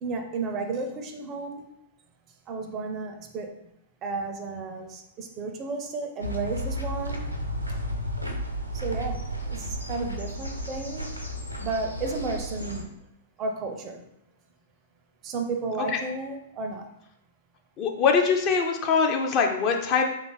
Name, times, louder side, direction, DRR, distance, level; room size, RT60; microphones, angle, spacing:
voice 1, 0.0-1.7 2.5-3.5 4.0-7.3 8.7-11.1 11.6-13.0 13.4-14.0 15.2-16.9, right 3 dB, 30° right, 5 dB, 0.4 m, -33 dB
sound 1, 6.2-12.8, equal, 90° right, 0.6 m, -33 dB
voice 2, 17.8-20.0, left 5 dB, 30° left, 3 dB, 0.4 m, -23 dB
3.2 x 2.4 x 3.8 m, 0.82 s
figure-of-eight pair, 105°, 0 cm